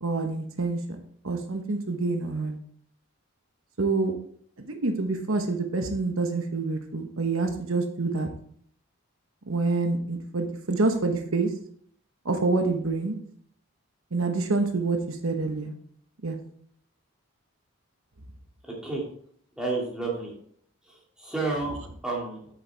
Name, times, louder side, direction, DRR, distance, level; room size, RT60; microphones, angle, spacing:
voice 1, 0.0-0.8 1.2-2.6 3.8-4.1 4.7-8.3 9.5-11.5 12.2-13.2 14.1-15.0 15.2-15.7 16.2-16.4, right 3 dB, 80° right, 5 dB, 1.1 m, -27 dB
voice 2, 18.6-19.0 19.6-20.3 21.2-21.8 22.0-22.4, right 3 dB, 5° right, -4 dB, 2.5 m, -30 dB
8.6 x 6.6 x 3.4 m, 0.63 s
head